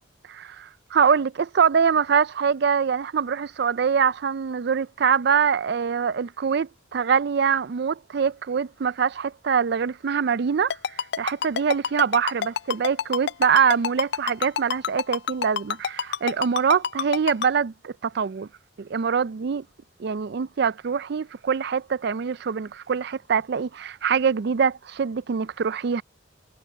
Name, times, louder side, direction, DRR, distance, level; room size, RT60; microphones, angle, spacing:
voice 1, 0.3-18.5 18.8-19.6 20.0-26.0, right 6 dB, 55° right, 0.4 m, -24 dB
Ringtone, 10.7-17.5, left 7 dB, 55° left, 0.4 m, -26 dB
head